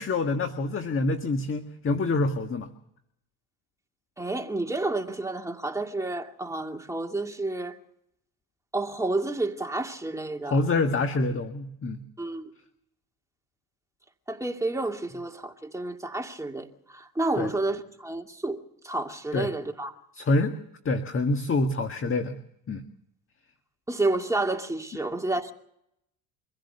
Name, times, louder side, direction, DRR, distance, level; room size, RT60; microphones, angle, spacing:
voice 1, 0.0-2.7 10.5-12.0 17.4-17.5 19.3-19.5 20.1-20.6 20.9-22.4 22.7-22.8, left 2 dB, 30° left, 1.7 m, -26 dB
voice 2, 4.2-7.8 8.7-10.6 12.2-12.5 14.3-20.0 23.9-25.5, right 2 dB, 5° right, 2.4 m, -30 dB
24.5 x 16.0 x 6.8 m
hypercardioid pair, 80°, 43 cm